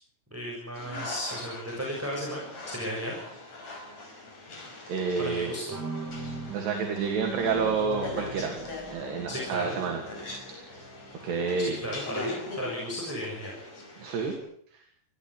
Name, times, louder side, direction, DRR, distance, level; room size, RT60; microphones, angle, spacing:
voice 1, 0.3-3.2 5.2-5.7 9.3-9.8 11.6-13.5, equal, 5° right, -3 dB, 6.2 m, -35 dB
sound 1, 0.7-14.4, left 2 dB, 40° left, 6.0 m, -41 dB
voice 2, 4.9-5.6 6.5-8.6 8.9-10.0 10.5-10.7 11.2-11.8 14.0-14.4 14.7-14.8, right 5 dB, 70° right, 2 dB, 4.7 m, -29 dB
sound 2, 5.7-12.0, right 4 dB, 25° right, 3.2 m, -40 dB
22.0 x 15.5 x 9.3 m, 0.66 s
omnidirectional pair, 5.1 m